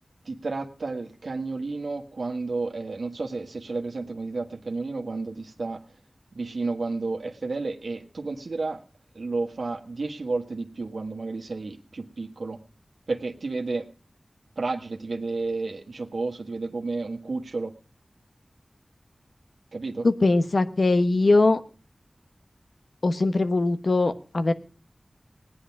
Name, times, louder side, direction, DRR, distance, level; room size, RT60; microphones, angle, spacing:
voice 1, 0.2-5.8 6.3-8.8 9.1-12.6 13.1-13.9 14.6-17.7 19.7-20.1, right 3 dB, 85° right, 4 dB, 1.4 m, -31 dB
voice 2, 20.0-21.6 23.0-24.5, left 2 dB, 70° left, 10 dB, 1.1 m, -21 dB
17.0 x 9.9 x 5.9 m, 0.40 s
cardioid pair, 40°, 0 cm